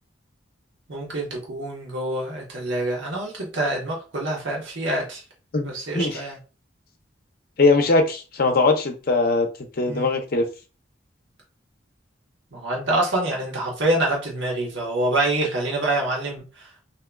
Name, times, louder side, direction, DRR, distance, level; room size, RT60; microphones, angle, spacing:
voice 1, 0.9-5.2 5.6-6.4 9.9-10.1 12.5-16.9, right 1 dB, 75° right, -2 dB, 1.0 m, -26 dB
voice 2, 5.5-6.2 7.6-9.5 9.8-10.4, left 3 dB, 50° left, 5 dB, 0.6 m, -20 dB
3.5 x 2.7 x 2.2 m, 0.33 s
head